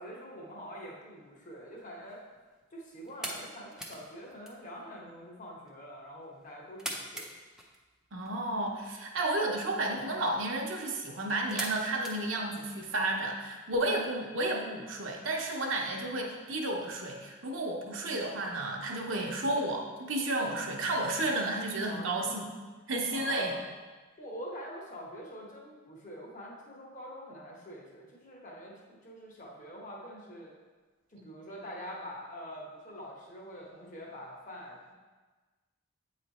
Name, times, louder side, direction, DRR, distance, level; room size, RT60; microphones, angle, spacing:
voice 1, 0.0-2.2 2.7-7.3 21.8-22.4 23.1-23.6 24.2-30.5 31.1-34.9, equal, 40° left, -3 dB, 1.2 m, -45 dB
sound 1, 1.7-13.1, right 1 dB, 5° right, 0.5 m, -46 dB
voice 2, 8.1-22.4 22.9-23.6, right 2 dB, 65° right, 0 dB, 0.8 m, -32 dB
8.2 x 3.2 x 4.1 m, 1.3 s
head